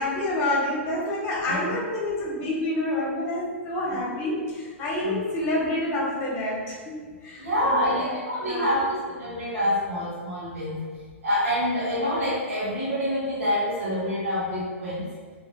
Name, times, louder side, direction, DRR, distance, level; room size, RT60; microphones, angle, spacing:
voice 1, 0.0-7.9 8.4-8.7, left 1 dB, 35° left, -4 dB, 1.1 m, -28 dB
voice 2, 1.4-1.8 5.0-5.2 7.4-15.1, equal, 85° right, -10 dB, 1.0 m, -27 dB
3.6 x 2.8 x 2.6 m, 1.5 s
hypercardioid pair, 120°, 7 cm